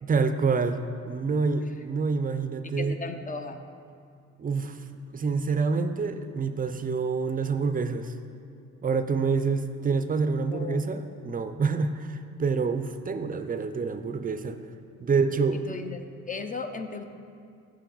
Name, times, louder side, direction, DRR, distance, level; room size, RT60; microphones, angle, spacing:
voice 1, 0.0-3.0 4.4-4.8 5.1-8.1 8.8-14.6 15.0-15.6, right 4 dB, 30° right, 9 dB, 0.5 m, -27 dB
voice 2, 2.8-3.6 10.5-10.8 15.5-16.0 16.3-17.0, left 4 dB, 25° left, 7 dB, 0.5 m, -35 dB
9.7 x 6.6 x 3.9 m, 2.4 s
cardioid pair, 90°, 30 cm